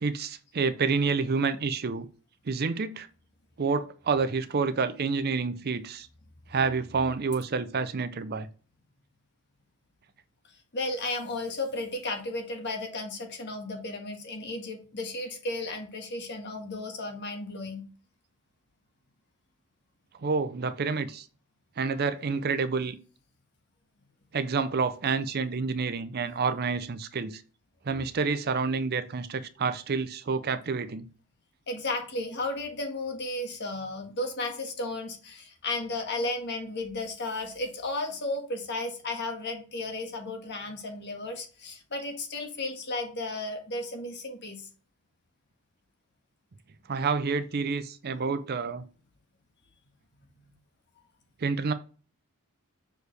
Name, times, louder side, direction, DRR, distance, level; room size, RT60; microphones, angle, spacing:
voice 1, 0.0-2.1 2.5-3.1 3.6-6.1 6.5-8.5 20.2-21.3 21.8-23.0 24.3-27.4 27.9-31.1 46.9-48.8 51.4-51.7, right 4 dB, 45° right, 0.5 m, -28 dB
voice 2, 10.7-17.8 31.7-44.7 50.4-50.5, left 2 dB, 50° left, 1.5 m, -34 dB
6.5 x 4.7 x 3.3 m
head